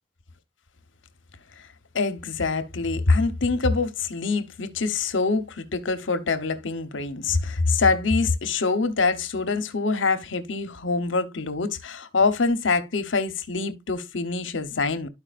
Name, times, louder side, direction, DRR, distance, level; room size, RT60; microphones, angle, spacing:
voice 1, 1.9-15.1, left 4 dB, 70° left, 1.0 m, -25 dB
12.5 x 4.8 x 2.4 m
head